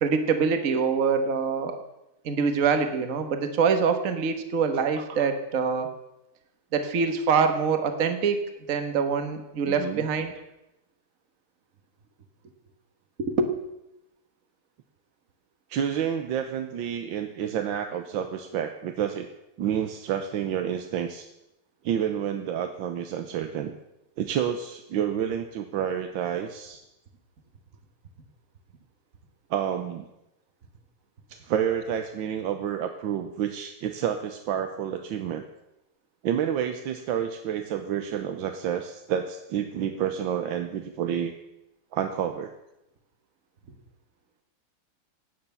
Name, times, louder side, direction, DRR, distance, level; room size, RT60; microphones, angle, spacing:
voice 1, 0.0-1.8 2.2-5.9 6.7-8.4 8.7-10.3 13.2-13.5, right 5 dB, 45° right, 7 dB, 1.5 m, -24 dB
voice 2, 9.6-10.1 15.7-19.3 19.6-21.3 21.8-23.7 24.2-26.8 29.5-30.1 31.3-35.4 36.2-41.3 41.9-42.5, right 9 dB, 70° right, 6 dB, 1.4 m, -29 dB
16.5 x 9.5 x 5.6 m, 0.89 s
omnidirectional pair, 2.4 m